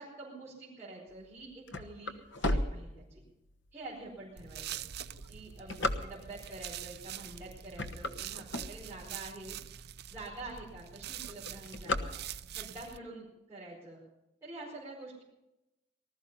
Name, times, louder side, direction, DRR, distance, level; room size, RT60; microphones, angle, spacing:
voice 1, 0.0-3.2 3.7-4.8 5.3-9.6 10.1-12.1 12.5-14.0 14.4-15.2, right 2 dB, 10° right, -9 dB, 4.6 m, -47 dB
sound 1, 1.2-3.5 4.1-4.2 4.8-6.5 7.2-7.4 7.7-9.2 9.7-9.8 10.0-10.1 10.4-10.8 11.1-12.7, left 1 dB, 65° left, 1.2 m, -34 dB
sound 2, 4.4-13.0, right 10 dB, 55° right, 0.5 m, -45 dB
19.5 x 13.0 x 5.5 m, 0.93 s
head